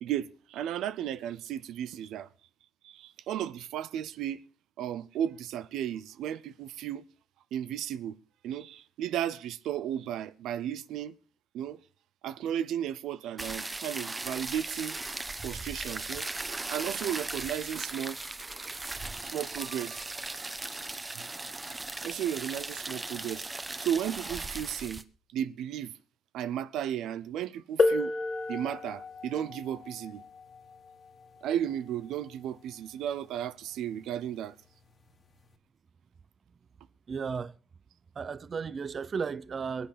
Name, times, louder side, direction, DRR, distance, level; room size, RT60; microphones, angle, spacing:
voice 1, 0.0-2.3 2.8-4.4 4.8-7.1 7.5-8.2 8.4-11.1 11.5-11.8 12.2-15.0 15.4-16.3 16.7-18.2 19.3-20.0 22.0-23.4 23.8-25.0 25.3-25.9 26.3-28.1 28.5-30.2 31.4-34.6, right 10 dB, 85° right, 0.6 m, -34 dB
sound 1, 13.4-25.0, right 2 dB, 20° right, 1.0 m, -38 dB
sound 2, 27.8-33.2 34.3-34.4 35.2-35.4, left 3 dB, 45° left, 1.7 m, -33 dB
voice 2, 37.1-37.5 38.2-39.9, right 5 dB, 45° right, 0.6 m, -34 dB
22.0 x 8.7 x 5.0 m
cardioid pair, 90°, 0 cm